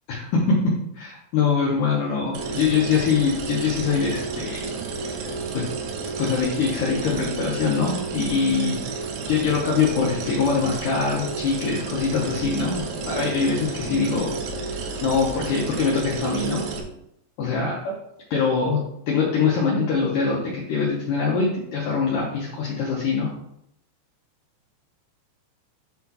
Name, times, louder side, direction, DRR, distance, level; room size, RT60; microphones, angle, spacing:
voice 1, 0.1-0.6 0.9-4.7 5.0-5.3 5.5-5.7 6.2-14.4 14.7-16.6 17.4-17.9 18.3-18.8 19.1-23.3, left 5 dB, 85° left, -3 dB, 1.8 m, -23 dB
sound 1, 2.3-16.8, right 4 dB, 80° right, 3.3 m, -31 dB
7.6 x 5.9 x 2.9 m, 0.76 s
omnidirectional pair, 5.4 m